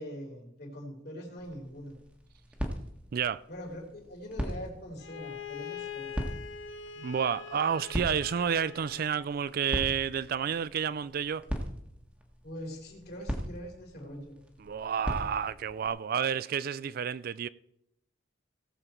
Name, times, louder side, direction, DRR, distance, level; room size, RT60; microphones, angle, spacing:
voice 1, 0.0-1.9 3.5-6.3 12.4-14.4, equal, 55° left, 3.4 m, -43 dB
sound 1, 1.4-15.9, equal, 5° right, 1.4 m, -40 dB
voice 2, 3.1-3.4 7.0-11.4 14.6-17.5, right 7 dB, 50° right, 0.3 m, -30 dB
Bowed string instrument, 5.0-9.2, left 7 dB, 75° left, 1.0 m, -43 dB
17.5 x 7.0 x 4.4 m
head